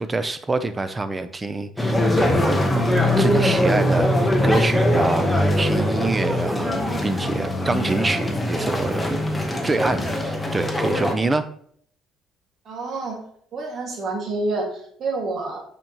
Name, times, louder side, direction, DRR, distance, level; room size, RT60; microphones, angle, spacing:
voice 1, 0.0-2.6 3.2-6.7 7.0-9.2 9.6-11.5, right 3 dB, 15° right, 10 dB, 0.5 m, -26 dB
sound 1, 1.8-11.1, left 1 dB, 5° left, 1.0 m, -21 dB
voice 2, 12.7-13.2 13.5-15.6, right 3 dB, 45° right, 1 dB, 1.8 m, -28 dB
8.8 x 5.1 x 2.9 m, 0.62 s
cardioid pair, 135°, 0 cm